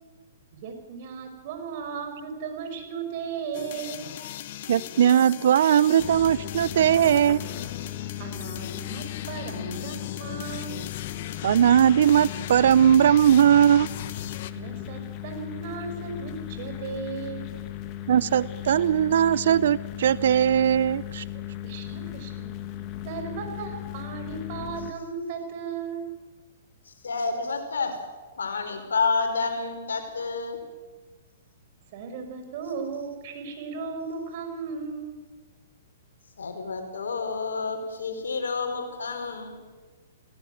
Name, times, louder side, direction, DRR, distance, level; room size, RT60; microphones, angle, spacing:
voice 1, 0.6-4.1 8.2-10.9 14.5-17.5 21.6-22.5 23.0-26.1 31.9-35.2, right 5 dB, 50° right, 6 dB, 5.5 m, -36 dB
sound 1, 3.5-14.5, left 13 dB, 55° left, 1.2 m, -38 dB
voice 2, 4.7-7.4 11.4-13.9 18.1-21.2, right 9 dB, 65° right, 20 dB, 0.6 m, -19 dB
sound 2, 6.0-24.9, left 12 dB, 35° left, 1.9 m, -37 dB
voice 3, 26.8-28.0 28.4-30.6 36.4-39.5, left 4 dB, 85° left, 5 dB, 5.0 m, -29 dB
18.5 x 18.0 x 9.3 m, 1.3 s
hypercardioid pair, 130°, 0 cm